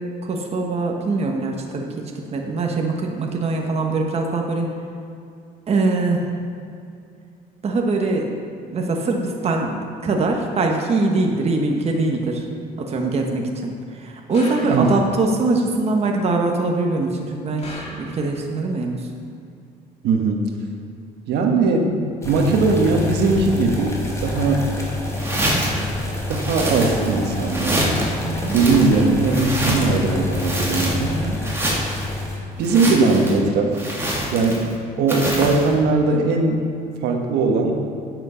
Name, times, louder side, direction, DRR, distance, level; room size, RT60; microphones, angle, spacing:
voice 1, 0.0-4.7 5.7-6.4 7.6-8.3 8.7-12.5 12.8-19.1 28.2-28.6 31.1-31.4, right 3 dB, 40° right, 1 dB, 1.2 m, -23 dB
sound 1, 14.3-15.2 17.6-18.5, left 1 dB, 35° left, 2.4 m, -37 dB
voice 2, 14.6-14.9 20.0-20.5 21.3-24.7 26.3-27.9 28.5-31.2 32.6-33.8 34.3-36.7 37.0-37.8, right 3 dB, 80° right, 2 dB, 1.4 m, -19 dB
sound 2, 22.2-32.4, left 1 dB, 15° left, 2.2 m, -28 dB
sound 3, 25.1-25.8 26.3-27.2 27.5-28.1 28.5-30.0 30.3-31.1 31.4-32.1 32.6-33.4 33.7-34.7 35.1-35.7, right 1 dB, 15° right, 2.2 m, -25 dB
9.1 x 8.1 x 5.7 m, 2.4 s
cardioid pair, 110°, 17 cm